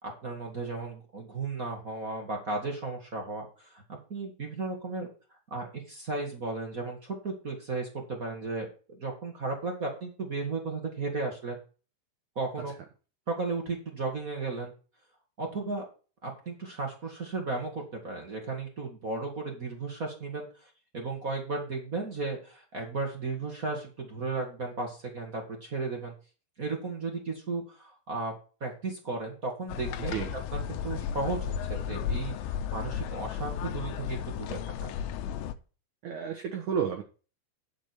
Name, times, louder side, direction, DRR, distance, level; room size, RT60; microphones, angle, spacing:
voice 1, 0.0-5.1 5.5-11.6 12.3-12.7 13.3-14.7 15.4-15.8 16.2-26.1 26.6-30.2 30.5-34.9, right 3 dB, 55° right, 1 dB, 0.9 m, -35 dB
sound 1, 29.7-35.6, left 8 dB, 80° left, 3.0 m, -34 dB
voice 2, 36.0-37.0, right 7 dB, 75° right, 5 dB, 1.8 m, -31 dB
10.5 x 7.1 x 4.5 m, 0.35 s
omnidirectional pair, 5.4 m